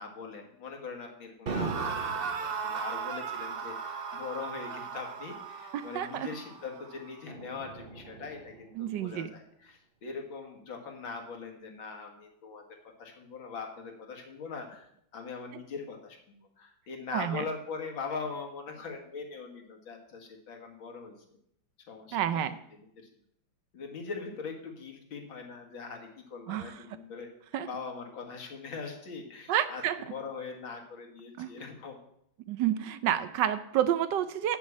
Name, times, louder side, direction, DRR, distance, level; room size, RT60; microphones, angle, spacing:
voice 1, 0.0-12.6 13.0-21.4 21.9-22.5 22.8-22.9 23.7-27.3 27.6-29.8 30.1-32.0, left 5 dB, 90° left, 3 dB, 2.4 m, -41 dB
sound 1, 1.5-8.6, right 5 dB, 45° right, 0.8 m, -37 dB
voice 2, 5.7-6.3 8.8-9.3 17.1-17.5 22.1-22.6 26.5-26.7 27.5-27.7 29.5-30.0 31.4-31.5 32.5-34.6, right 10 dB, 70° right, 12 dB, 1.2 m, -29 dB
8.3 x 7.4 x 7.1 m, 0.72 s
omnidirectional pair, 2.1 m